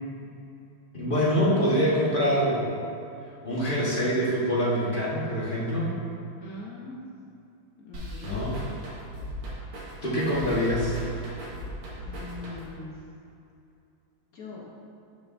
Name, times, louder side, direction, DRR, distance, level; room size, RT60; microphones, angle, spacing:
voice 1, 0.9-2.6 3.4-5.9 8.2-8.6 10.0-11.0, equal, 30° left, -7 dB, 1.3 m, -25 dB
voice 2, 6.4-7.1 7.8-8.4 12.0-13.0 14.3-14.6, left 2 dB, 65° left, -4 dB, 0.9 m, -41 dB
sound 1, 7.9-12.9, equal, 85° right, 2.3 m, -38 dB
9.3 x 6.5 x 2.5 m, 2.7 s
omnidirectional pair, 2.4 m